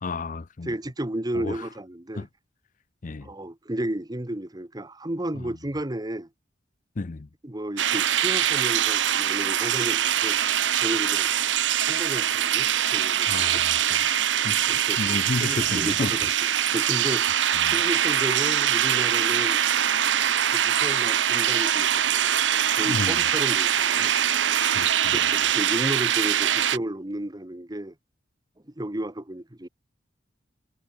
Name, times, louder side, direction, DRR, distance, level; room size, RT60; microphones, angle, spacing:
voice 1, 0.0-0.7 1.3-1.7 2.2-2.3 3.0-3.3 7.0-7.3 13.3-14.6 15.0-16.1 17.6-17.8 22.8-23.2 24.7-25.2, left 3 dB, 45° left, 0.6 m, -32 dB
voice 2, 0.6-2.3 3.2-6.3 7.4-10.4 10.8-11.3 11.9-13.6 14.7-16.3 16.7-17.3 17.6-19.6 20.5-22.4 22.8-24.1 25.1-27.9 28.7-29.7, right 1 dB, 20° right, 1.2 m, -33 dB
sound 1, 7.8-26.8, right 10 dB, 75° right, 0.9 m, -23 dB
head